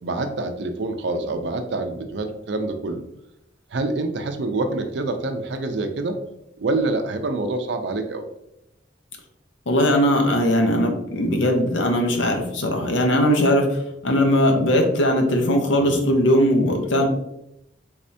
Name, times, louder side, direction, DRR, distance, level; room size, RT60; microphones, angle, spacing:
voice 1, 0.0-3.0 3.7-6.2 6.6-8.2 15.7-16.1, right 2 dB, 65° right, 7 dB, 0.5 m, -26 dB
voice 2, 9.7-17.1, equal, 80° left, 3 dB, 0.7 m, -19 dB
3.4 x 3.2 x 2.7 m, 0.82 s
head